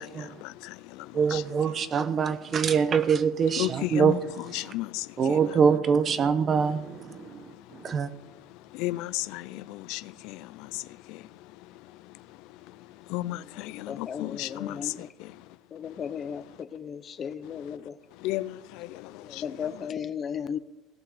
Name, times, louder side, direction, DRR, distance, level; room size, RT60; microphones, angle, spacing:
voice 1, 0.0-1.7 3.6-5.6 6.8-16.0 17.5-17.8 18.1-19.7, left 16 dB, 75° left, 0.4 m, -36 dB
voice 2, 1.1-4.2 5.2-8.1, right 6 dB, 35° right, 1.0 m, -24 dB
voice 3, 13.9-15.1 15.7-18.0 19.1-20.6, left 7 dB, 35° left, 0.8 m, -36 dB
17.5 x 5.9 x 9.7 m
supercardioid pair, 115°, 0 cm